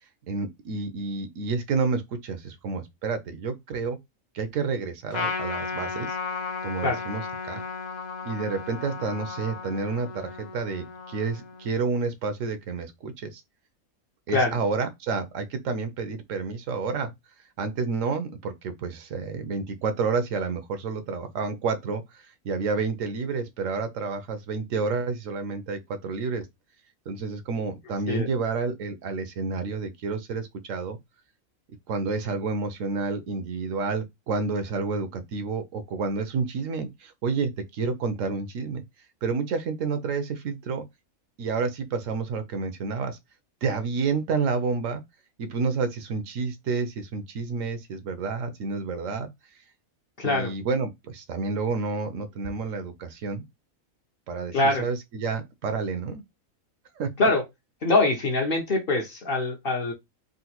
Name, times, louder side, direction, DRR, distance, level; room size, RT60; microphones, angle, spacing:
voice 1, 0.3-4.0 4.3-6.2 6.6-7.6 8.2-13.4 14.3-17.1 17.6-26.5 27.1-31.0 31.9-38.8 39.2-40.8 41.4-43.2 43.6-45.0 45.4-49.3 50.2-53.4 54.3-56.2 57.0-57.3, right 4 dB, 70° right, 0.9 m, -29 dB
Trumpet, 5.1-11.8, left 5 dB, 70° left, 0.4 m, -34 dB
voice 2, 50.2-50.5 54.5-54.8 57.2-57.4 57.8-59.9, left 2 dB, 50° left, 0.8 m, -23 dB
3.7 x 2.2 x 2.8 m
omnidirectional pair, 1.5 m